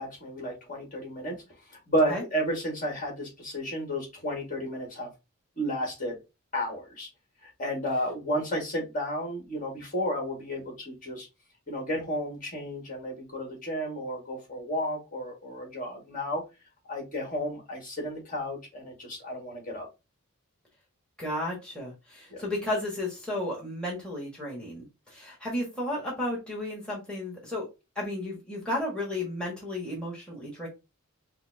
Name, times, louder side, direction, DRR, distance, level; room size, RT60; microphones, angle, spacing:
voice 1, 0.0-1.3 1.9-5.1 5.6-6.2 6.5-7.1 7.4-11.3 11.7-16.4 16.9-19.9 22.3-22.4, equal, 40° left, 1.7 m, -32 dB
voice 2, 21.2-27.7 27.9-30.7, left 1 dB, 5° left, 1.3 m, -33 dB
5.5 x 2.1 x 2.6 m
head